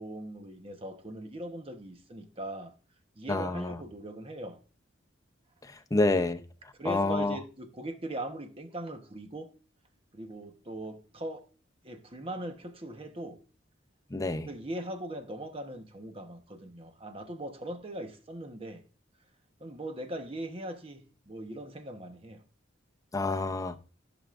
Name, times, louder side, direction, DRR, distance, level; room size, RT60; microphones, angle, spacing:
voice 1, 0.0-2.7 3.2-4.6 6.8-9.6 10.1-11.5 11.8-13.4 14.5-18.8 19.6-22.4, right 1 dB, 30° right, 1.1 m, -40 dB
voice 2, 3.3-3.8 5.9-6.4 6.8-7.4 14.1-14.5 23.1-23.8, left 2 dB, 20° left, 0.6 m, -28 dB
15.0 x 6.1 x 2.5 m
head